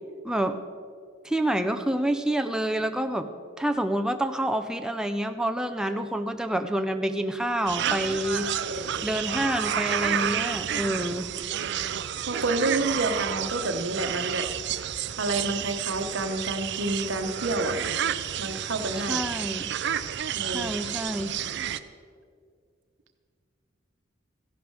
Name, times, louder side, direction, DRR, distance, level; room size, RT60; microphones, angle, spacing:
voice 1, 0.2-0.6 1.2-3.3 3.6-8.5 9.0-11.3 18.9-19.7 20.5-21.3, right 1 dB, 5° right, 7 dB, 0.4 m, -28 dB
sound 1, 7.7-21.8, right 9 dB, 60° right, 0.5 m, -30 dB
voice 2, 8.2-9.1 12.2-14.5 15.2-17.9 18.4-19.2 20.3-20.7, right 2 dB, 80° right, 7 dB, 1.1 m, -29 dB
15.0 x 11.0 x 4.7 m, 2.2 s
head